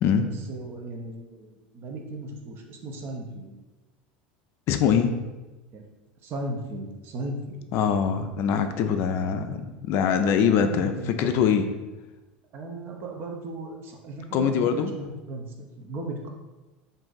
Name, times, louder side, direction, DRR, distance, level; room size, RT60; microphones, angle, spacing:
voice 1, 0.2-3.5 5.7-5.8 6.2-7.6 10.6-11.2 12.5-16.3, right 2 dB, 50° right, 2 dB, 0.6 m, -36 dB
voice 2, 4.7-5.1 7.7-11.7 14.3-14.9, left 7 dB, 55° left, 8 dB, 0.3 m, -23 dB
2.6 x 2.5 x 3.8 m, 1.2 s
hypercardioid pair, 90°, 5 cm